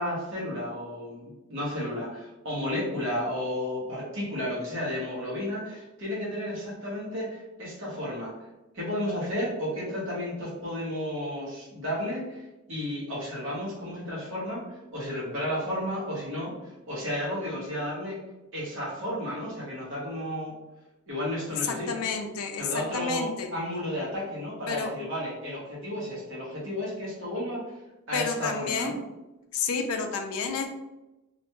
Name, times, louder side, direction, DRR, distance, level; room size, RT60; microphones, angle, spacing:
voice 1, 0.0-8.3 8.7-18.2 18.5-20.5 21.1-21.9 22.6-27.6 28.1-29.0, left 1 dB, 60° right, -5 dB, 1.0 m, -33 dB
voice 2, 21.6-22.7 22.9-23.5 24.7-24.9 28.1-29.0 29.5-30.7, left 5 dB, 75° left, 5 dB, 0.4 m, -30 dB
2.4 x 2.2 x 2.9 m, 1.0 s
head